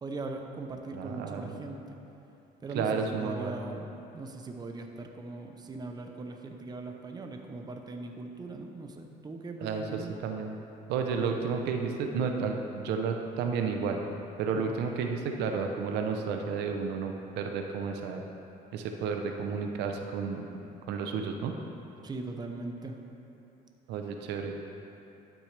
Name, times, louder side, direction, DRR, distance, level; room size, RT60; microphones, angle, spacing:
voice 1, 0.0-2.0 2.6-10.1 14.6-14.8 22.0-23.0, right 3 dB, 25° right, 4 dB, 0.7 m, -40 dB
voice 2, 0.9-1.6 2.7-3.6 9.6-10.6 10.9-14.0 14.4-18.2 18.7-20.4 20.9-21.5 23.9-24.6, right 5 dB, 85° right, 4 dB, 0.7 m, -32 dB
12.0 x 6.2 x 3.3 m, 2.8 s
cardioid pair, 110°, 17 cm